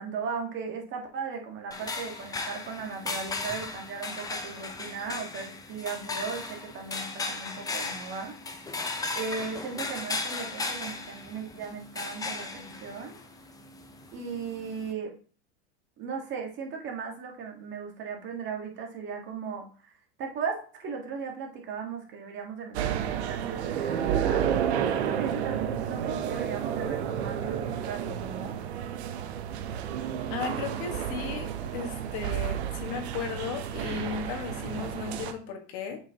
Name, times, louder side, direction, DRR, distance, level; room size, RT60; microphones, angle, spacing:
voice 1, 0.0-8.4 9.1-13.1 14.1-15.1 16.0-19.9 20.2-24.5 24.9-28.6, right 5 dB, 35° right, 1 dB, 1.7 m, -37 dB
sound 1, 1.7-14.9, left 3 dB, 10° left, 0.7 m, -36 dB
sound 2, 22.7-35.3, right 9 dB, 80° right, 0.9 m, -31 dB
voice 2, 30.3-36.0, left 6 dB, 55° left, 5 dB, 1.6 m, -35 dB
7.6 x 4.8 x 2.9 m, 0.39 s
supercardioid pair, 125°, 33 cm